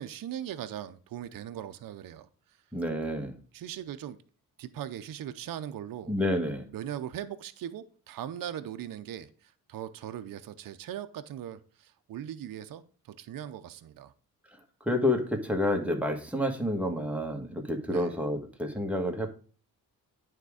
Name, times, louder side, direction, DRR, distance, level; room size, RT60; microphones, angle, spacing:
voice 1, 0.0-2.3 3.5-4.2 4.6-6.1 6.7-14.1 17.9-18.2, right 10 dB, 65° right, 0.7 m, -39 dB
voice 2, 2.7-3.3 6.1-6.7 14.8-19.3, left 1 dB, 5° right, 1.4 m, -29 dB
9.2 x 3.7 x 4.9 m
cardioid pair, 80°, 37 cm